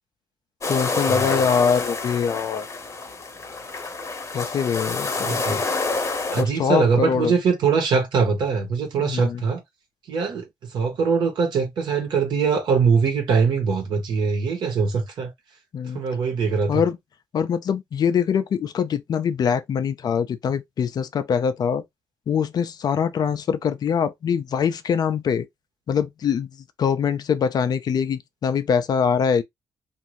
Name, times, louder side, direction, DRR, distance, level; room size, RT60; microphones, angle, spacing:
sound 1, 0.6-6.4, left 3 dB, 40° left, 1.0 m, -28 dB
voice 1, 0.7-2.7 4.3-5.7 6.4-7.3 9.0-9.4 15.7-16.0 16.7-17.0 17.3-21.8 22.3-25.5 25.9-26.5 26.8-29.4, left 7 dB, 55° left, 0.5 m, -23 dB
voice 2, 5.2-5.6 6.3-9.6 10.1-15.3 15.9-16.8, right 5 dB, 70° right, 1.2 m, -22 dB
2.6 x 2.6 x 3.1 m
hypercardioid pair, 50°, 8 cm